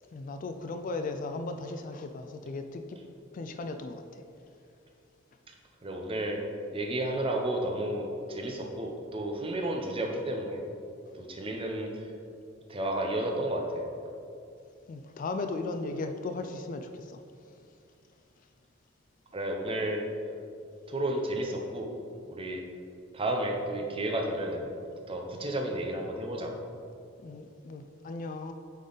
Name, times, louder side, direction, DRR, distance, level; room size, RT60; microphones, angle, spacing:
voice 1, 0.1-2.8 3.3-4.0 14.9-17.2 27.2-28.5, left 3 dB, 40° left, 7 dB, 0.3 m, -36 dB
voice 2, 5.8-6.4 6.7-10.6 11.2-11.9 12.7-13.8 19.3-20.1 20.9-21.9 22.3-22.6 23.1-24.7 25.1-26.6, right 1 dB, 30° right, 2 dB, 0.7 m, -32 dB
8.3 x 3.9 x 4.0 m, 2.6 s
head